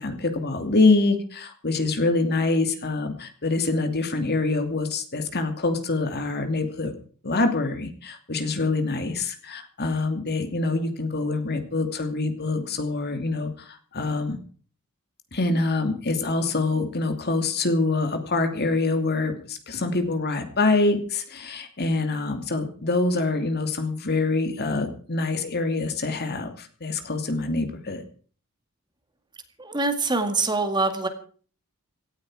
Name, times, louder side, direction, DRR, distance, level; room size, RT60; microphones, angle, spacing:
voice 1, 0.0-6.9 7.2-14.4 15.3-28.0, left 3 dB, 45° left, 7 dB, 2.7 m, -25 dB
voice 2, 29.6-31.1, right 3 dB, 20° right, 7 dB, 2.0 m, -24 dB
17.5 x 14.0 x 4.9 m, 0.42 s
head